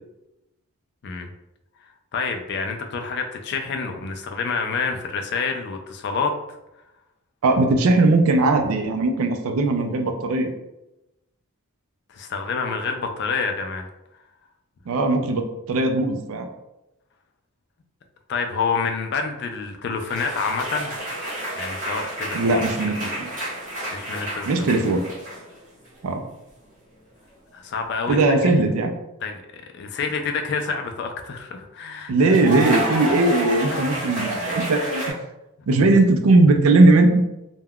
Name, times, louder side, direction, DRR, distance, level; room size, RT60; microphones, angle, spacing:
voice 1, 2.1-6.3 12.1-13.9 18.3-20.9 21.6-22.6 23.9-24.5 27.5-28.5 29.2-29.4 29.7-32.4 33.7-33.8, left 5 dB, 50° left, 5 dB, 0.3 m, -28 dB
voice 2, 7.4-10.5 14.9-16.5 22.3-23.3 24.5-25.0 26.0-26.2 28.1-28.9 32.1-35.2 35.7-37.2, right 2 dB, 70° right, 5 dB, 0.4 m, -19 dB
sound 1, 20.1-25.6 25.8-26.3 28.2-28.4 32.3-35.1, right 1 dB, 35° right, 1.1 m, -30 dB
3.4 x 2.2 x 2.2 m, 0.93 s
head